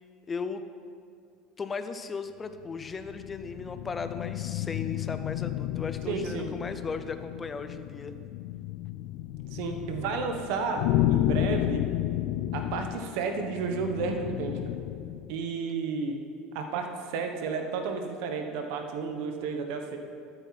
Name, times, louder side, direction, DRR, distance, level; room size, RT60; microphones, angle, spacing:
voice 1, 0.3-0.6 1.6-8.2, left 5 dB, 25° left, 10 dB, 0.6 m, -36 dB
sound 1, 2.7-15.4, left 13 dB, 70° left, 0.3 m, -32 dB
voice 2, 6.1-6.5 9.5-11.8 12.5-14.7 15.3-16.2 16.5-20.0, right 5 dB, 75° right, 5 dB, 1.2 m, -32 dB
13.0 x 8.9 x 4.2 m, 2.3 s
supercardioid pair, 115°, 0 cm